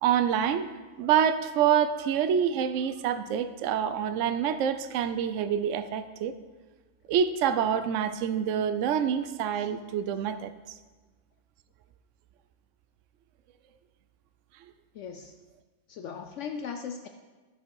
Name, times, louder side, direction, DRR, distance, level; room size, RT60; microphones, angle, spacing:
voice 1, 0.0-0.7 1.0-6.3 7.1-10.5, right 8 dB, 70° right, 11 dB, 0.9 m, -26 dB
voice 2, 14.9-15.3 15.9-17.1, left 6 dB, 70° left, 6 dB, 0.8 m, -38 dB
11.0 x 7.0 x 4.6 m, 1.3 s
omnidirectional pair, 1.4 m